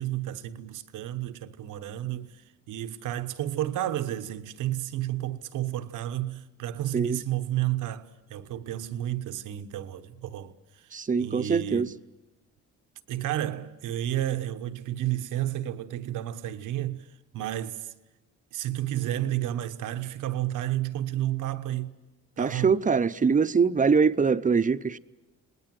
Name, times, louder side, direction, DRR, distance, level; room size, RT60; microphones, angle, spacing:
voice 1, 0.0-2.4 2.7-10.9 11.2-12.0 13.1-17.1 17.3-17.9 18.5-22.0 22.4-22.8, right 13 dB, 85° right, 1.2 m, -31 dB
voice 2, 10.9-11.9 22.4-25.0, right 5 dB, 25° right, 0.7 m, -23 dB
28.0 x 20.0 x 7.6 m
cardioid pair, 90°, 30 cm